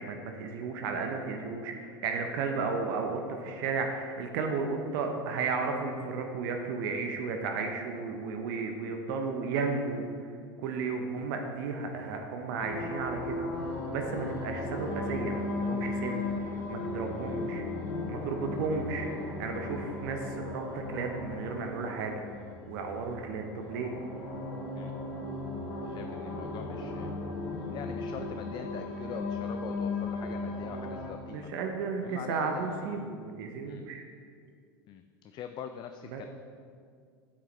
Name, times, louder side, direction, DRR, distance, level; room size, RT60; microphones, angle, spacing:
voice 1, 0.0-10.3 10.6-13.4 13.9-17.6 18.1-22.2 22.7-23.9 31.3-34.0 36.1-36.2, right 4 dB, 60° right, 4 dB, 0.9 m, -34 dB
sound 1, 12.6-31.1, left 2 dB, 60° left, 1.9 m, -36 dB
voice 2, 25.7-27.1 27.7-31.5 32.0-32.9 33.6-33.8 34.9-36.3, left 8 dB, 35° left, 8 dB, 0.4 m, -43 dB
8.6 x 7.4 x 3.3 m, 2.2 s
hypercardioid pair, 85°, 13 cm